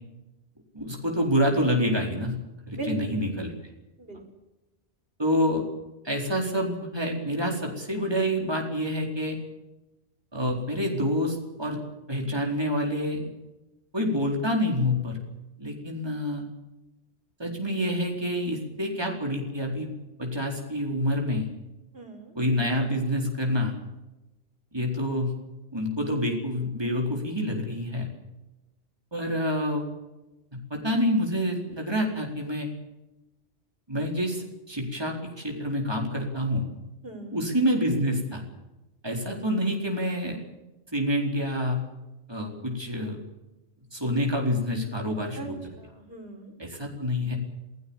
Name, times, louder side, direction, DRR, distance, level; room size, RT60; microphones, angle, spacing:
voice 1, 0.7-2.4 2.7-3.5 5.2-5.7 6.0-9.4 10.3-11.8 12.1-13.3 13.9-15.2 15.6-16.4 17.4-19.9 20.2-21.5 22.3-23.7 24.7-25.3 25.7-28.1 29.1-29.9 30.5-32.7 33.9-36.6 37.3-38.4 39.0-40.4 40.9-41.8 42.3-43.2 43.9-45.5 46.6-47.4, equal, 25° right, 1 dB, 4.5 m, -27 dB
voice 2, 2.7-3.2 4.0-4.2 21.9-22.3 37.0-37.4 45.4-45.5 45.8-46.5, right 3 dB, 60° right, 3 dB, 4.6 m, -38 dB
27.0 x 18.0 x 7.3 m, 1.0 s
omnidirectional pair, 1.1 m